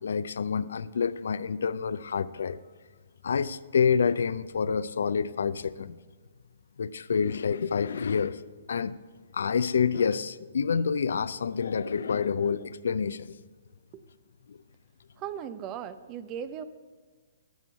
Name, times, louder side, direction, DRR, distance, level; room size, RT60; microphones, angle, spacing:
voice 1, 0.0-2.6 3.2-6.0 6.8-8.4 8.7-9.0 9.3-13.3 14.5-14.6, left 6 dB, 65° left, 16 dB, 0.4 m, -28 dB
voice 2, 15.2-16.6, right 9 dB, 30° right, 13 dB, 0.6 m, -37 dB
12.5 x 6.9 x 8.0 m, 1.4 s
figure-of-eight pair, 125°, 0 cm